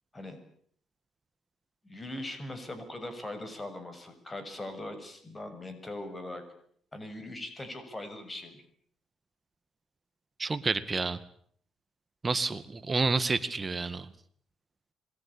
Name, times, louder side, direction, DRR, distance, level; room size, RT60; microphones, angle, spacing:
voice 1, 1.8-6.4 6.9-8.6, left 1 dB, 20° left, 9 dB, 7.0 m, -40 dB
voice 2, 10.4-11.2 12.2-14.1, right 3 dB, 30° right, 12 dB, 2.1 m, -29 dB
27.0 x 22.5 x 8.8 m, 0.63 s
cardioid pair, 90°, 0 cm